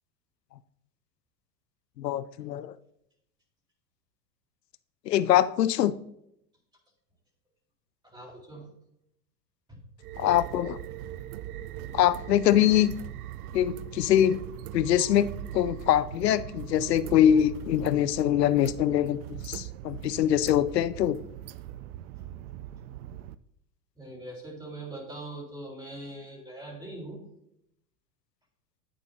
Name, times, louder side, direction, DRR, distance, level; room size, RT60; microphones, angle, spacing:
voice 1, 2.0-2.7 5.1-5.9 10.2-10.8 11.9-12.9 13.5-14.4 14.7-15.3 15.5-21.2, left 11 dB, 90° left, 15 dB, 0.6 m, -23 dB
voice 2, 8.0-8.7 9.7-9.8 24.0-27.2, right 2 dB, 10° right, -4 dB, 4.0 m, -41 dB
sound 1, 10.0-23.3, right 13 dB, 70° right, 0.6 m, -40 dB
10.5 x 9.0 x 2.8 m, 0.78 s
hypercardioid pair, 95°, 47 cm